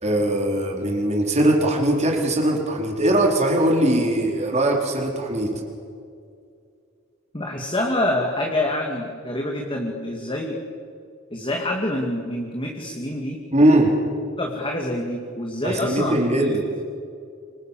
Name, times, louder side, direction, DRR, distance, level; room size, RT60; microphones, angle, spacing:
voice 1, 0.0-5.6 13.5-13.9 15.6-16.6, right 1 dB, 35° right, 1 dB, 4.4 m, -20 dB
voice 2, 7.3-10.6 11.3-13.4 14.4-16.6, left 1 dB, 25° left, 1 dB, 2.5 m, -26 dB
26.5 x 26.5 x 7.5 m, 2.4 s
head